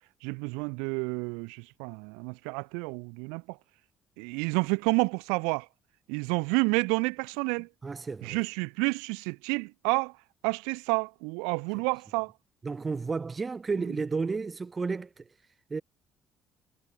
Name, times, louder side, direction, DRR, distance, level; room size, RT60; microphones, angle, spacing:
voice 1, 0.2-3.6 4.2-5.7 6.1-7.7 8.2-10.1 10.4-12.3, right 35 dB, 85° right, 0.8 m, -29 dB
voice 2, 7.8-8.4 12.6-15.2 15.7-15.8, right 4 dB, 35° right, 0.5 m, -32 dB
hypercardioid pair, 60°, 0 cm